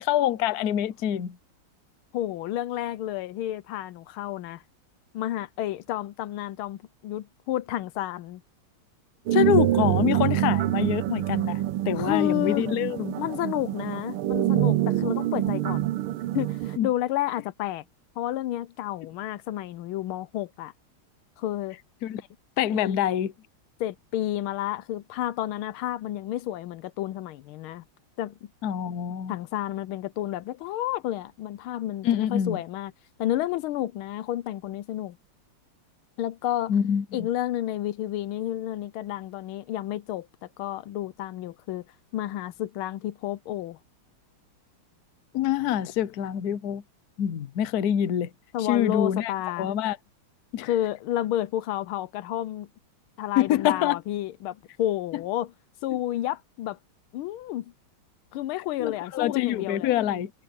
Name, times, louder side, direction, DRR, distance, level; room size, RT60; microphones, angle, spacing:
voice 1, 0.0-1.4 9.3-13.2 16.8-16.9 22.0-22.2 22.6-23.3 28.6-29.4 32.0-32.6 36.7-37.3 45.3-46.8 47.2-48.3 48.7-49.3 49.6-50.0 50.5-50.7 53.4-54.0 58.8-60.3, left 10 dB, 55° left, 1.2 m, -25 dB
voice 2, 2.1-4.6 5.1-8.4 12.0-12.7 13.2-15.9 16.3-17.8 18.2-20.7 21.4-21.8 22.7-23.0 23.8-27.8 28.2-28.3 29.3-32.9 33.2-35.2 36.2-36.7 37.1-40.3 40.6-41.8 42.1-43.8 48.5-49.7 50.6-52.7 53.2-55.5 55.8-56.8 57.1-57.7 58.3-59.9, left 13 dB, 85° left, 1.5 m, -30 dB
sound 1, 9.3-16.8, right 14 dB, 85° right, 1.5 m, -26 dB
omnidirectional pair, 2.3 m